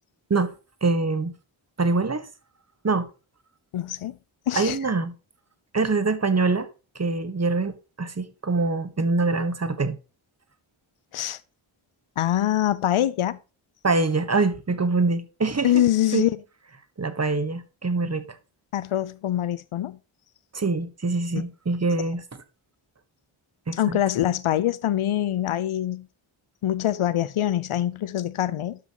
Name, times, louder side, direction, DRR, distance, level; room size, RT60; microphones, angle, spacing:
voice 1, 0.8-1.3 1.8-2.3 2.8-3.1 4.5-5.1 5.7-6.7 6.9-10.0 13.8-15.8 16.1-16.3 17.0-18.2 20.5-22.2 23.7-24.0, right 3 dB, 30° right, 1.4 m, -24 dB
voice 2, 3.7-4.2 4.5-4.8 11.1-11.4 12.2-13.4 15.6-16.3 18.7-20.0 23.7-26.1 26.6-28.8, left 12 dB, 75° left, 0.7 m, -24 dB
11.5 x 6.2 x 3.0 m
cardioid pair, 65°, 50 cm